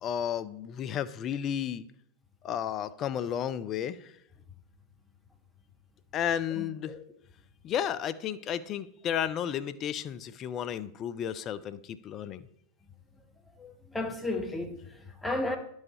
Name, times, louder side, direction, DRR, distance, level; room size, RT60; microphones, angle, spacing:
voice 1, 0.0-1.9 2.4-4.1 6.1-6.9 7.6-12.4, left 9 dB, 30° left, 0.4 m, -33 dB
voice 2, 6.5-7.0 13.6-15.6, left 2 dB, 5° left, 1.0 m, -34 dB
11.0 x 4.8 x 4.1 m
figure-of-eight pair, 90°, 0 cm